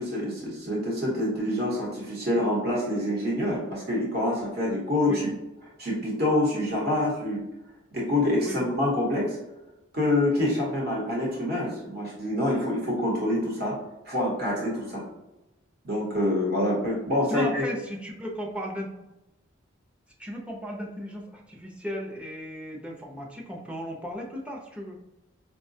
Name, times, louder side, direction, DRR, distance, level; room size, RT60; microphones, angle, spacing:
voice 1, 0.0-5.3 5.8-7.4 7.9-9.4 9.9-13.8 14.0-15.0 15.8-17.7, left 1 dB, 50° right, -4 dB, 1.0 m, -26 dB
voice 2, 17.3-18.9 20.2-25.0, equal, 5° right, -1 dB, 0.5 m, -35 dB
4.8 x 2.2 x 2.6 m, 0.98 s
head